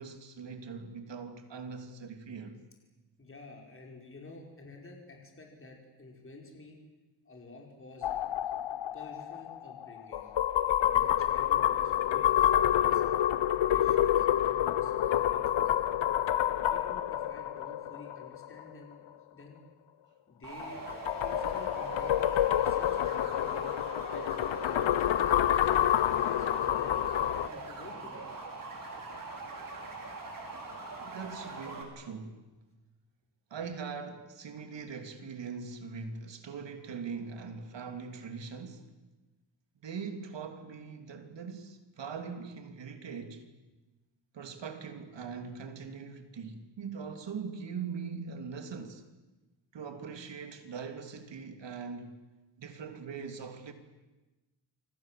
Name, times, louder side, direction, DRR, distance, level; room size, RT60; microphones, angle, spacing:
voice 1, 0.0-2.6 31.0-32.4 33.5-38.9 39.8-43.5 44.3-49.0 49.7-52.2 52.6-53.7, right 5 dB, 75° right, 3.1 m, -41 dB
voice 2, 3.2-6.8 7.2-8.1 8.9-10.3 10.8-13.0 13.5-15.7 16.7-19.0 19.3-19.6 20.3-20.8 21.2-22.1 22.6-23.7 24.1-25.7 26.0-28.3, left 3 dB, 30° left, 5.1 m, -51 dB
sound 1, 8.0-18.6 20.6-27.5, left 11 dB, 90° left, 0.9 m, -28 dB
sound 2, 20.4-31.8, right 3 dB, 50° right, 6.2 m, -42 dB
29.5 x 25.0 x 7.7 m
wide cardioid pair, 170°, 43 cm